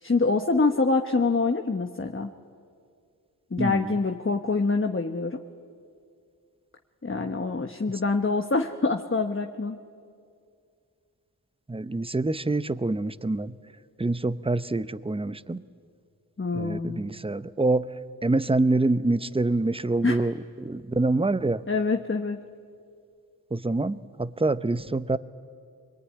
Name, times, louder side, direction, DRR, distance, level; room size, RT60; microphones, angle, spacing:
voice 1, 0.0-2.3 3.5-5.4 7.0-9.8 16.4-17.0 20.0-20.2 21.7-22.4, left 3 dB, 35° left, 5 dB, 1.1 m, -25 dB
voice 2, 3.6-4.0 11.7-13.5 14.0-15.6 16.5-17.8 18.2-21.6 23.5-25.2, right 2 dB, 15° right, 15 dB, 0.7 m, -26 dB
23.0 x 22.5 x 9.7 m, 2.3 s
wide cardioid pair, 50°, 38 cm